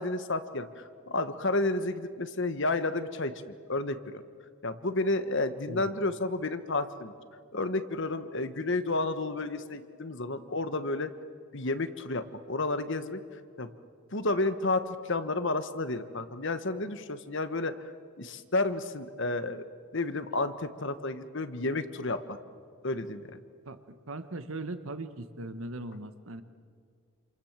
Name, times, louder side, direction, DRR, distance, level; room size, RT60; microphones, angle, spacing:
voice 1, 0.0-3.3 3.7-4.2 4.6-7.1 7.5-11.1 11.5-13.7 14.1-17.9 18.2-19.6 19.9-22.4 22.8-23.4, left 2 dB, 55° left, 11 dB, 1.3 m, -31 dB
voice 2, 24.1-26.4, right 2 dB, 65° right, 10 dB, 1.5 m, -39 dB
28.5 x 27.5 x 7.4 m, 2.1 s
head